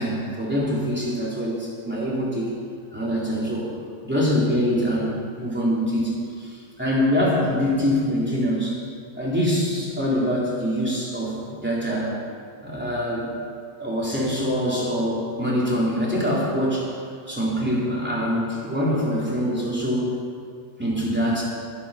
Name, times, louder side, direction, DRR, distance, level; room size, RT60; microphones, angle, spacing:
voice 1, 0.0-2.5 2.9-3.7 4.0-8.8 9.1-12.1 12.6-13.3 13.8-16.9 17.3-20.1 20.8-21.4, equal, 5° right, -7 dB, 3.4 m, -24 dB
19.5 x 8.7 x 5.7 m, 2.2 s
omnidirectional pair, 1.9 m